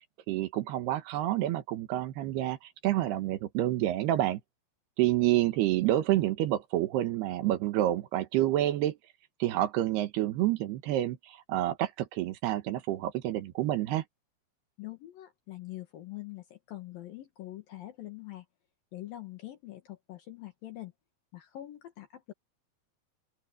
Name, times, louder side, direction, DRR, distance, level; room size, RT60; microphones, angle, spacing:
voice 1, 0.3-2.6 2.8-4.4 5.0-9.0 9.4-14.0, right 14 dB, 85° right, 3.3 m, -28 dB
voice 2, 14.8-18.5 18.9-20.9 21.3-22.3, left 15 dB, 70° left, 3.1 m, -44 dB
open air
omnidirectional pair, 4.5 m